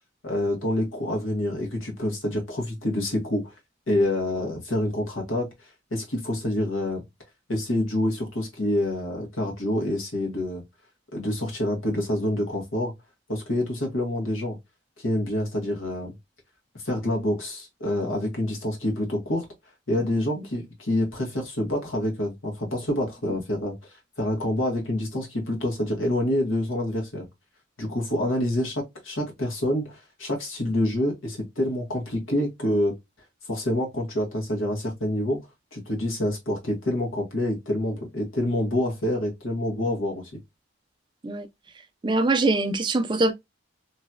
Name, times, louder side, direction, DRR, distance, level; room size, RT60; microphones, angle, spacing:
voice 1, 0.2-3.5 3.9-5.5 5.9-7.0 7.5-10.6 11.1-12.9 13.3-14.6 15.0-16.1 16.8-19.5 19.9-23.7 24.2-27.3 27.8-32.9 33.5-35.4 35.7-40.3, left 1 dB, 85° left, 1.5 m, -27 dB
voice 2, 42.0-43.3, right 2 dB, 25° right, 0.4 m, -23 dB
3.1 x 2.8 x 2.3 m
head